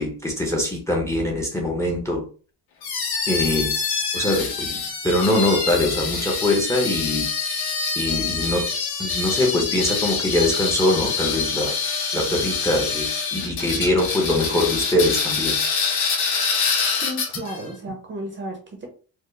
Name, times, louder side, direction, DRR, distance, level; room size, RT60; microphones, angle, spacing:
voice 1, 0.0-2.2 3.3-7.5 7.9-8.7 9.0-11.8 12.1-15.6, left 1 dB, 5° left, -1 dB, 0.7 m, -23 dB
sound 1, 2.8-17.6, left 5 dB, 60° left, 1.5 m, -25 dB
voice 2, 17.0-18.9, right 1 dB, 25° right, 3 dB, 0.7 m, -33 dB
4.4 x 2.1 x 3.2 m, 0.38 s
cardioid pair, 180°, 42 cm